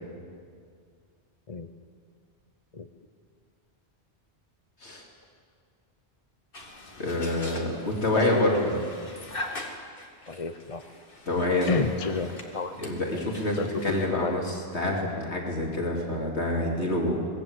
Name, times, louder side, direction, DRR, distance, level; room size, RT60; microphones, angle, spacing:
sound 1, 6.5-14.1, left 1 dB, 55° left, 2.5 m, -42 dB
voice 1, 7.0-8.8 11.3-11.8 12.8-17.2, left 1 dB, 85° left, -1 dB, 3.4 m, -27 dB
voice 2, 8.1-8.7 10.3-10.8 11.7-12.8 13.6-14.4, left 4 dB, 35° left, 8 dB, 0.8 m, -31 dB
24.0 x 19.5 x 8.2 m, 2.2 s
omnidirectional pair, 1.1 m